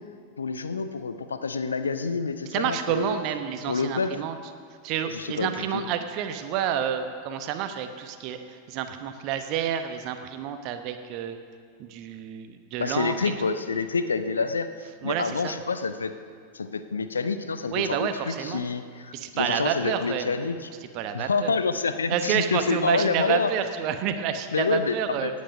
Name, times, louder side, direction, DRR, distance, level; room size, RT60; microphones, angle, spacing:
voice 1, 0.4-3.2 3.7-4.2 5.0-5.8 12.8-16.2 16.5-20.7 21.1-23.5 24.5-25.4, left 4 dB, 75° left, 10 dB, 0.6 m, -28 dB
voice 2, 2.5-4.3 4.8-8.4 8.7-11.4 11.8-13.6 15.0-15.5 17.7-18.6 19.1-20.4 20.9-21.5 22.1-25.3, right 9 dB, 40° right, 8 dB, 1.0 m, -29 dB
17.5 x 8.5 x 5.2 m, 2.2 s
figure-of-eight pair, 90°, 0 cm